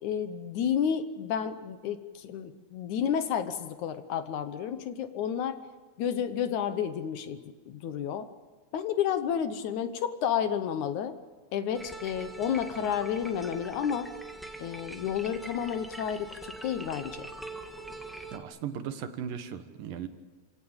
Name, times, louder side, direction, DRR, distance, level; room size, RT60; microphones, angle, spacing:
voice 1, 0.0-5.6 6.0-7.4 7.7-8.3 8.7-11.1 11.5-14.1 14.6-17.3, left 8 dB, 70° left, 10 dB, 2.3 m, -31 dB
sound 1, 11.7-18.4, right 2 dB, ahead, 0.6 m, -43 dB
voice 2, 18.3-20.1, right 8 dB, 85° right, 9 dB, 3.0 m, -37 dB
27.5 x 17.0 x 8.8 m, 1.4 s
omnidirectional pair, 3.8 m